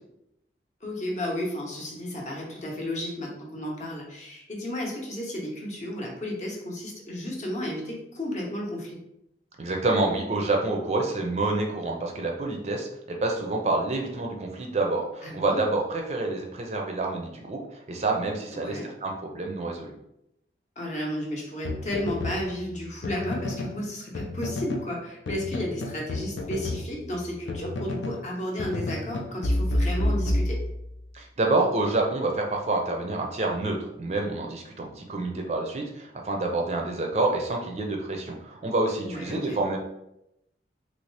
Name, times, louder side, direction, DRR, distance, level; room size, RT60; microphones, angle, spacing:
voice 1, 0.8-8.9 15.2-15.6 18.5-18.9 20.8-30.6 39.0-39.6, left 1 dB, 40° left, -1 dB, 0.8 m, -33 dB
voice 2, 9.6-17.6 17.9-19.9 31.1-39.8, right 2 dB, 35° right, 1 dB, 0.4 m, -28 dB
sound 1, 21.6-23.8 24.1-24.9 25.3-28.3 28.6-31.0, left 1 dB, 85° left, 0.5 m, -30 dB
3.1 x 2.7 x 3.2 m, 0.83 s
head